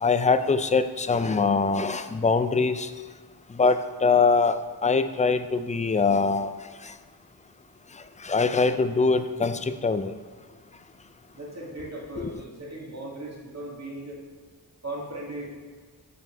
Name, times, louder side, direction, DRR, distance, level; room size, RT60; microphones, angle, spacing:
voice 1, 0.0-2.9 3.5-6.5 6.8-6.9 8.2-10.1 12.2-12.3, left 4 dB, 20° left, 11 dB, 0.3 m, -23 dB
voice 2, 11.3-14.2 14.8-15.4, right 1 dB, 40° right, -4 dB, 2.0 m, -37 dB
6.0 x 5.7 x 4.3 m, 1.5 s
wide cardioid pair, 45°, 42 cm